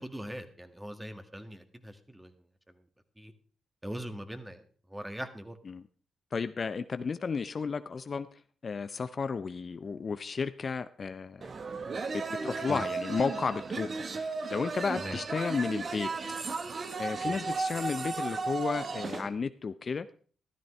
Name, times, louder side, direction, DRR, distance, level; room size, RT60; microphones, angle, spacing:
voice 1, 0.0-2.3 3.2-3.3 3.8-4.6 4.9-5.6 12.7-12.8 15.0-15.2 17.2-17.4, equal, 10° right, 7 dB, 1.8 m, -41 dB
voice 2, 6.3-8.3 8.6-11.5 12.1-16.1 17.0-20.1, left 5 dB, 50° left, 13 dB, 0.5 m, -33 dB
sound 1, 11.4-19.3, right 4 dB, 50° right, 1.2 m, -35 dB
14.0 x 12.5 x 3.3 m, 0.43 s
hypercardioid pair, 40°, 0 cm